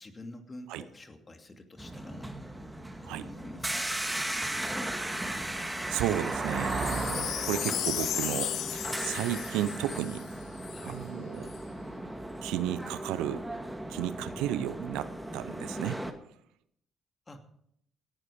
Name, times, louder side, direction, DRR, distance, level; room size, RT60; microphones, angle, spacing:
voice 1, 0.0-2.3 3.0-4.3 10.7-11.0 14.3-14.7 17.3-17.6, left 1 dB, 30° left, 5 dB, 2.6 m, -48 dB
sound 1, 1.8-16.1, right 1 dB, 10° right, 2.1 m, -37 dB
sound 2, 2.9-3.0 3.5-10.1, right 3 dB, 35° right, 2.3 m, -38 dB
voice 2, 5.9-10.3 10.8-11.5 12.4-13.4 13.9-15.1 15.3-16.0, right 12 dB, 80° right, 15 dB, 0.6 m, -33 dB
Wind chime, 6.5-10.9 11.5-11.6, left 11 dB, 65° left, 0.5 m, -35 dB
17.5 x 11.0 x 5.1 m, 0.72 s
hypercardioid pair, 50°, 0 cm